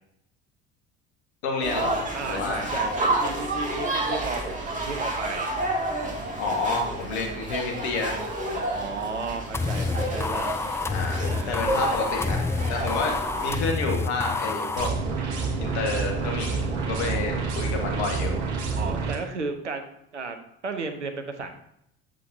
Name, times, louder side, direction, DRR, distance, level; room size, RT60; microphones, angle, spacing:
voice 1, 1.4-2.6 6.4-8.3 10.9-13.1 13.4-14.9 15.6-18.4, left 3 dB, 70° left, 2 dB, 1.6 m, -29 dB
sound 1, 1.6-13.6, right 2 dB, 20° right, 2.2 m, -30 dB
voice 2, 2.1-5.5 8.5-10.5 11.3-11.9 16.9-17.7 18.8-19.8 20.1-20.4 20.6-21.5, right 4 dB, 90° right, 7 dB, 0.7 m, -34 dB
sound 2, 9.5-14.9, left 3 dB, 10° left, 0.3 m, -28 dB
sound 3, 14.8-19.2, right 4 dB, 70° right, 1.3 m, -28 dB
7.5 x 7.4 x 2.7 m, 0.77 s
figure-of-eight pair, 60°, 34 cm